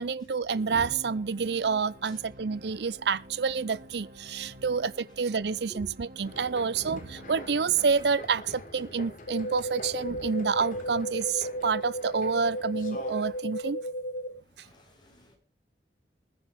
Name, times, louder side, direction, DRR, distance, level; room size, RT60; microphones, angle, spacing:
voice 1, 0.0-13.8, right 5 dB, 70° right, 0.6 m, -28 dB
sound 1, 0.5-9.0, equal, 50° right, 3.6 m, -50 dB
voice 2, 4.7-5.3 5.7-5.9 14.4-15.4, equal, 25° left, 6.1 m, -50 dB
sound 2, 6.2-13.4, left 1 dB, 50° left, 3.6 m, -45 dB
sound 3, 9.3-14.3, equal, 75° left, 4.9 m, -35 dB
20.5 x 10.0 x 3.6 m
head